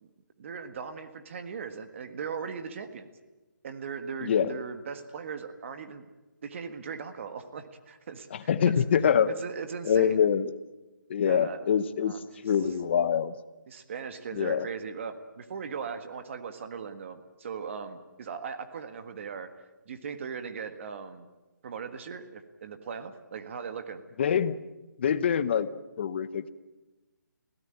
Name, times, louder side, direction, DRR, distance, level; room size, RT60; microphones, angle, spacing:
voice 1, 0.4-3.1 3.6-6.1 6.4-8.8 9.3-10.2 11.2-11.6 12.0-12.2 13.7-19.5 19.9-21.3 21.6-24.0, right 6 dB, 40° right, 8 dB, 1.7 m, -39 dB
voice 2, 4.2-4.5 8.5-9.3 9.8-10.5 11.1-12.1 12.4-13.3 14.4-14.7 24.2-24.6 25.0-25.7 26.0-26.5, left 8 dB, 35° left, 14 dB, 0.9 m, -24 dB
23.0 x 17.0 x 9.0 m, 1.1 s
hypercardioid pair, 165°, 11 cm